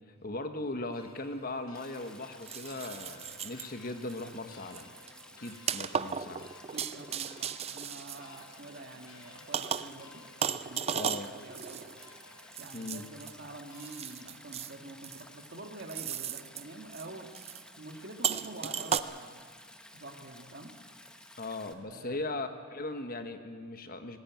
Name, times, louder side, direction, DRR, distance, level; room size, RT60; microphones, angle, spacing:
voice 1, 0.2-4.9 5.4-6.5 10.9-11.3 12.7-13.1 21.4-24.2, left 2 dB, 40° left, 8 dB, 1.1 m, -38 dB
sound 1, 0.9-14.3, left 4 dB, 75° left, 1.8 m, -58 dB
sound 2, 0.9-1.0 2.4-3.7 4.1-4.3 4.7-8.8 9.5-10.0 10.4-13.3 13.7-14.7 15.0-15.5 15.9-16.6 16.9-17.1 17.3-17.6 18.2-19.0, right 8 dB, 30° right, 0.4 m, -35 dB
Stream, 1.7-21.7, left 1 dB, 5° left, 0.9 m, -54 dB
voice 2, 6.7-11.9 12.6-17.3 17.6-19.5 19.9-20.8 21.8-22.3, right 2 dB, 50° right, 2 dB, 1.6 m, -47 dB
18.5 x 15.0 x 9.1 m, 2.1 s
head